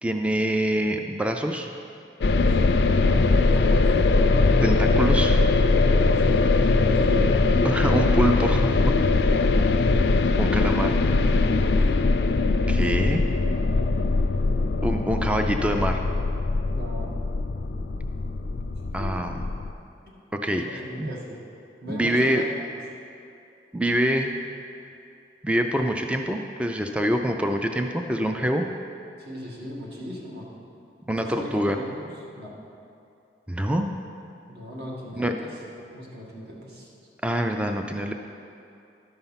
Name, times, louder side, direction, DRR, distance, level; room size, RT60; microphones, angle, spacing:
voice 1, 0.0-1.7 4.6-5.5 7.6-9.0 10.4-11.0 12.7-13.2 14.8-16.0 18.9-19.4 20.3-21.1 21.9-22.4 23.7-24.4 25.4-28.6 31.1-31.8 33.5-33.9 35.2-35.3 37.2-38.1, equal, 5° right, 4 dB, 0.4 m, -25 dB
sound 1, 2.2-19.7, left 3 dB, 75° left, 0.4 m, -21 dB
voice 2, 2.3-2.7 3.0-4.2 6.2-7.4 9.3-9.5 11.5-11.9 13.5-13.9 16.7-17.1 18.7-19.1 20.1-20.2 20.5-21.4 21.8-22.4 29.2-30.5 31.2-32.6 34.5-36.9, equal, 60° right, -4 dB, 1.9 m, -39 dB
12.5 x 5.6 x 5.7 m, 2.6 s
head